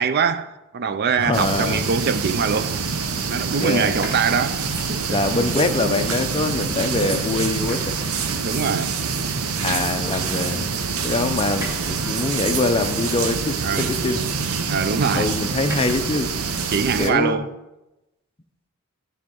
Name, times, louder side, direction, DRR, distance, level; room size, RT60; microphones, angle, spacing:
voice 1, 0.0-2.8 3.3-4.6 4.9-5.2 8.4-9.0 13.6-13.9 14.7-15.3 16.7-17.5, right 6 dB, 50° right, 0.4 m, -23 dB
voice 2, 1.2-1.8 3.6-4.1 5.1-8.0 9.6-10.7 11.0-14.2 15.1-16.3 17.0-17.5, left 2 dB, 25° left, 0.5 m, -24 dB
sound 1, 1.3-17.1, right 5 dB, 85° right, 0.7 m, -26 dB
sound 2, 4.0-7.1 7.4-16.3, equal, 15° right, 2.4 m, -43 dB
10.0 x 3.6 x 6.2 m
head